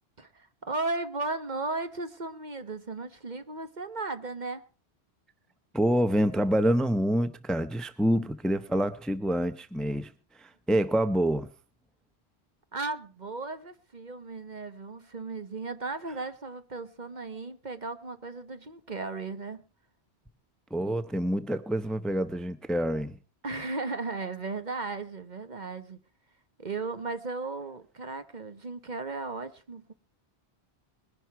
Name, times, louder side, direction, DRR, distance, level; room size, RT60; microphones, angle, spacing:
voice 1, 0.2-4.6 12.7-19.6 23.4-26.0 26.6-29.9, right 3 dB, 45° right, 1.3 m, -36 dB
voice 2, 5.7-11.5 20.7-23.2, right 1 dB, ahead, 0.8 m, -27 dB
21.0 x 11.0 x 4.6 m
omnidirectional pair, 1.1 m